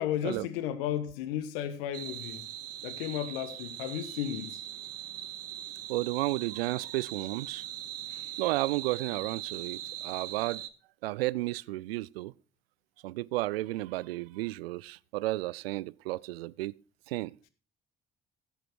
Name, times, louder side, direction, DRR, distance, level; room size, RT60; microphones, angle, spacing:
voice 1, 0.0-2.4 2.8-4.6, left 10 dB, 70° left, 1.3 m, -34 dB
sound 1, 1.9-10.7, right 12 dB, 55° right, 1.1 m, -41 dB
voice 2, 5.9-7.6 8.4-10.6 11.0-12.3 13.0-16.7 17.1-17.3, right 19 dB, 75° right, 0.5 m, -32 dB
16.5 x 7.4 x 4.7 m
figure-of-eight pair, 50°, 30 cm